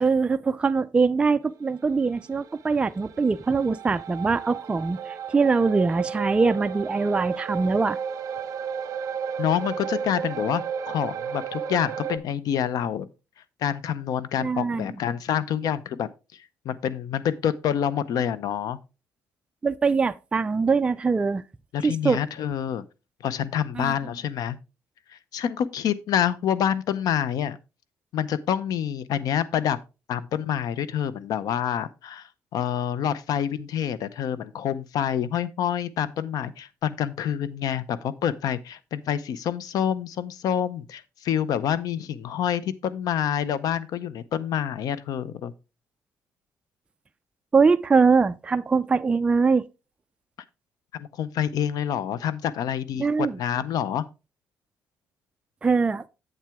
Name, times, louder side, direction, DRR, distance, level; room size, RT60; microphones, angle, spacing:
voice 1, 0.0-8.0 14.4-14.9 19.6-21.4 21.8-22.2 23.8-23.9 47.5-49.6 53.0-53.4 55.6-56.0, right 4 dB, 15° right, 0.3 m, -22 dB
sound 1, 1.8-12.2, right 7 dB, 55° right, 0.9 m, -33 dB
voice 2, 9.4-13.1 13.6-18.8 21.7-22.8 23.2-24.6 25.1-27.6 28.1-29.8 30.1-45.5 50.9-54.0, left 9 dB, 70° left, 0.6 m, -27 dB
8.0 x 7.5 x 3.5 m
cardioid pair, 135°, 7 cm